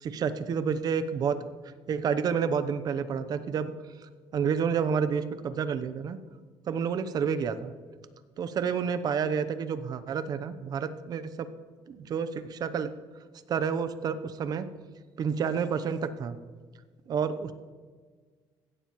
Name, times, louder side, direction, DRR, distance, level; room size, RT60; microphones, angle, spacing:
voice 1, 0.0-1.4 1.9-3.7 4.3-6.2 6.7-7.7 8.4-11.5 11.9-12.9 13.5-14.7 15.2-16.3 17.1-17.5, right 6 dB, 45° right, 11 dB, 0.8 m, -29 dB
16.5 x 12.0 x 3.1 m, 1.5 s
cardioid pair, 130°, 9 cm